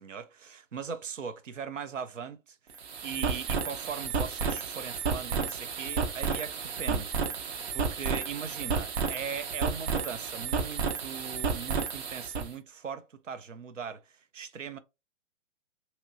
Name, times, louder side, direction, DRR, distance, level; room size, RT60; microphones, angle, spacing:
voice 1, 0.0-14.8, right 6 dB, 85° right, 0.7 m, -40 dB
sound 1, 2.7-12.5, right 5 dB, 55° right, 0.9 m, -32 dB
3.0 x 2.9 x 2.6 m
figure-of-eight pair, 120°, 36 cm